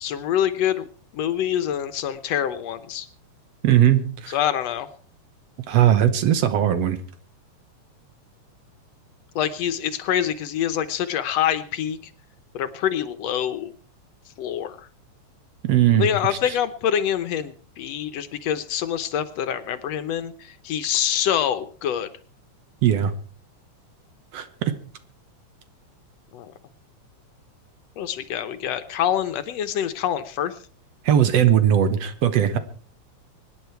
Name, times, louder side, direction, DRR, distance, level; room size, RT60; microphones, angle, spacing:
voice 1, 0.0-0.9 1.1-3.1 4.3-4.9 9.4-12.0 12.5-13.7 14.4-14.9 16.0-22.1 26.3-26.5 28.0-30.5, left 10 dB, 70° left, 11 dB, 1.9 m, -25 dB
voice 2, 3.6-4.4 5.7-7.0 15.6-16.6 22.8-23.1 24.3-24.7 31.0-32.6, right 10 dB, 65° right, 11 dB, 2.0 m, -19 dB
24.5 x 10.0 x 4.5 m, 0.42 s
omnidirectional pair, 3.3 m